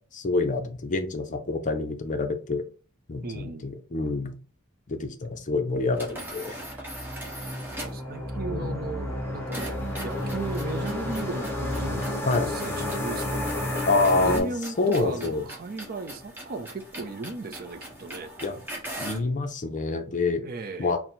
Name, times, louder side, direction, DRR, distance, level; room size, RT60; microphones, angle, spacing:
voice 1, 0.1-2.6 3.1-4.4 4.9-6.6 8.5-8.9 12.3-12.5 13.8-14.5 14.8-15.4 18.4-18.6 19.0-20.4 20.8-21.0, left 3 dB, 35° left, 0.5 m, -27 dB
voice 2, 3.2-3.7 7.7-18.3 20.4-21.0, right 3 dB, 45° right, 0.5 m, -36 dB
sound 1, 5.9-8.1 9.5-19.3, right 1 dB, 10° right, 1.0 m, -41 dB
sound 2, 6.5-14.4, left 1 dB, 10° left, 1.1 m, -31 dB
3.8 x 2.1 x 4.4 m
head